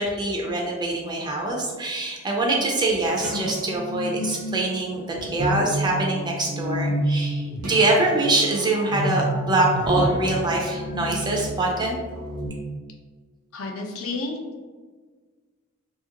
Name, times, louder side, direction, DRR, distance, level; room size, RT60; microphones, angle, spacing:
voice 1, 0.0-12.0, right 2 dB, 20° right, -1 dB, 0.3 m, -24 dB
sound 1, 3.1-12.5, right 1 dB, 85° right, 0.6 m, -29 dB
voice 2, 13.5-14.6, left 3 dB, 65° left, 2 dB, 0.5 m, -31 dB
2.8 x 2.4 x 2.8 m, 1.4 s
head